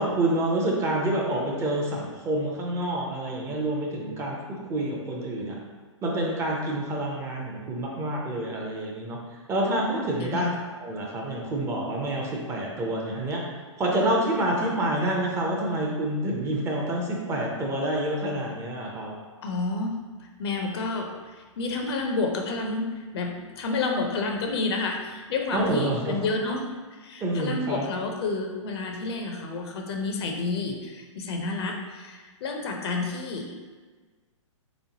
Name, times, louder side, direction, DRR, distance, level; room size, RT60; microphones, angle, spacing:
voice 1, 0.0-5.6 6.0-10.5 10.8-13.4 13.8-19.1 25.5-26.2 26.5-26.6 27.2-27.9, right 1 dB, 15° right, -2 dB, 0.5 m, -28 dB
voice 2, 19.4-21.1 21.4-26.6 27.0-33.6, left 3 dB, 55° left, 2 dB, 0.5 m, -30 dB
3.3 x 3.1 x 2.7 m, 1.4 s
hypercardioid pair, 125°, 16 cm